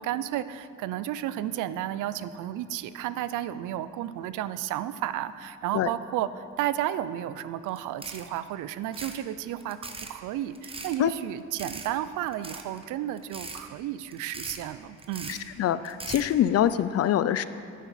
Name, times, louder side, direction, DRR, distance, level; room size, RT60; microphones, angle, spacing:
voice 1, 0.0-15.4, right 12 dB, 85° right, 14 dB, 0.5 m, -32 dB
sound 1, 7.7-8.4 8.9-9.2 9.6-10.1 10.5-11.0 11.6-11.9 12.3-12.8 13.2-13.6 14.1-14.6 15.0-15.4 15.8-16.3, right 3 dB, 20° right, 0.8 m, -39 dB
voice 2, 15.3-17.4, left 11 dB, 55° left, 14 dB, 0.5 m, -24 dB
10.0 x 9.2 x 4.2 m, 2.5 s
cardioid pair, 90°, 30 cm